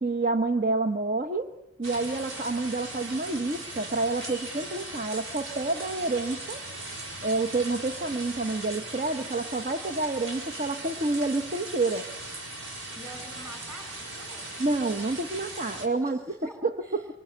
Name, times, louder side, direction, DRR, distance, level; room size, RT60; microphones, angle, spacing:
voice 1, 0.0-1.5 1.8-6.6 7.2-12.1 14.6-17.1, right 3 dB, 40° right, 7 dB, 1.1 m, -28 dB
sound 1, 1.8-15.9, right 2 dB, 75° right, 4.7 m, -39 dB
voice 2, 12.9-14.6 16.0-17.0, right 1 dB, 15° right, 4 dB, 7.1 m, -46 dB
25.0 x 24.5 x 8.7 m, 0.87 s
head